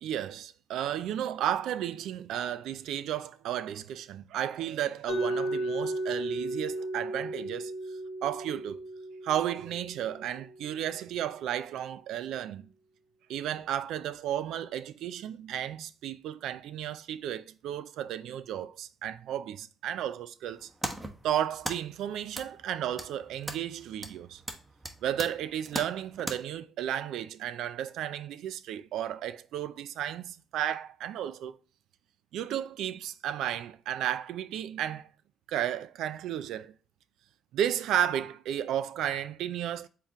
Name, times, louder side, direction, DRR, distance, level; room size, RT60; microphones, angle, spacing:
voice 1, 0.0-7.7 8.2-8.8 9.2-12.7 13.3-20.7 21.2-24.4 25.0-31.6 32.3-35.1 35.5-36.7 37.5-39.9, right 10 dB, 85° right, 0.3 m, -33 dB
Mallet percussion, 5.1-10.9, right 1 dB, 70° left, 1.3 m, -35 dB
sound 1, 20.5-26.4, right 1 dB, 15° right, 0.9 m, -40 dB
4.5 x 3.6 x 2.8 m
cardioid pair, 90°, 0 cm